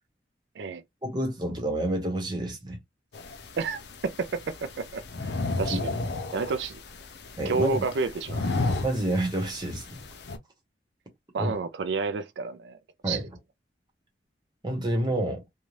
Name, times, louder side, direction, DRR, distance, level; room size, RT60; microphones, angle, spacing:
voice 1, 1.0-2.8 5.5-5.8 7.4-7.8 8.8-10.0 11.4-11.6 13.0-13.2 14.6-15.4, right 1 dB, 25° right, 0.9 m, -29 dB
sound 1, 3.1-10.4, left 3 dB, 70° left, 0.6 m, -34 dB
voice 2, 3.6-5.0 5.6-6.0 6.3-6.8 7.5-8.6 11.3-12.8 13.1-13.3, right 4 dB, 80° right, 0.4 m, -30 dB
2.6 x 2.2 x 3.1 m
head